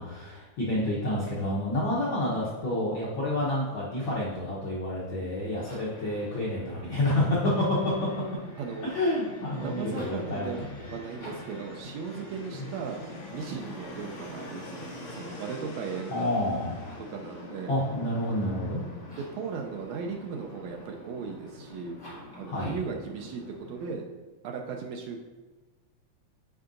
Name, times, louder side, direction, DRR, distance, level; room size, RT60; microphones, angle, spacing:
voice 1, 0.0-7.9 8.8-10.9 12.6-12.7 16.1-16.9 17.7-18.8 22.4-22.8, left 1 dB, 75° left, -6 dB, 1.1 m, -29 dB
sound 1, 5.6-6.0 6.9-7.5 9.8-10.3 11.2-11.6 16.6-17.2 19.0-19.5 22.0-22.5, equal, 30° left, 1.8 m, -48 dB
Fixed-wing aircraft airplane, 5.9-23.9, left 1 dB, 55° left, 1.9 m, -45 dB
voice 2, 9.6-10.6 10.9-13.0 13.3-16.4 17.1-17.7 19.2-22.0 22.4-23.4 23.7-24.0 24.4-25.2, right 5 dB, 80° right, 2 dB, 1.6 m, -37 dB
9.4 x 4.6 x 2.5 m, 1.2 s
omnidirectional pair, 3.6 m